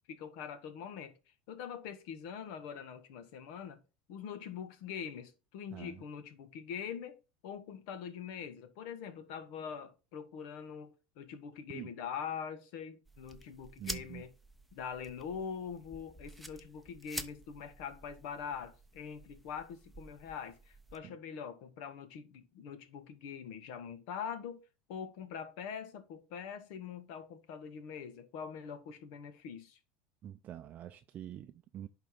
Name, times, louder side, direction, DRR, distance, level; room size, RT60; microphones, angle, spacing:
voice 1, 0.1-1.2 1.5-3.8 4.1-14.3 14.7-29.8, left 7 dB, 70° left, 1.4 m, -43 dB
voice 2, 5.7-6.0 11.7-11.9 13.8-14.2 21.0-21.2 30.2-31.9, right 11 dB, 40° right, 0.5 m, -46 dB
sound 1, 13.1-21.0, right 1 dB, ahead, 0.8 m, -49 dB
10.5 x 4.0 x 3.8 m
supercardioid pair, 120°, 4 cm